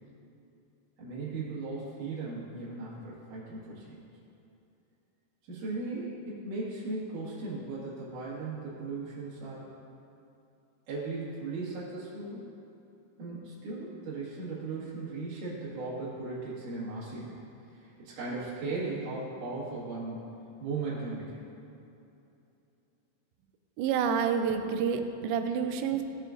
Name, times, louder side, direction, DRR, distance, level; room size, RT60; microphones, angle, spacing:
voice 1, 1.0-3.9 5.5-9.7 10.9-12.5 13.2-17.4 17.8-20.2 20.6-21.4, right 3 dB, 60° right, -8 dB, 3.2 m, -37 dB
voice 2, 23.8-26.0, right 7 dB, 90° right, 7 dB, 2.5 m, -28 dB
16.0 x 6.4 x 2.5 m, 2.8 s
omnidirectional pair, 4.3 m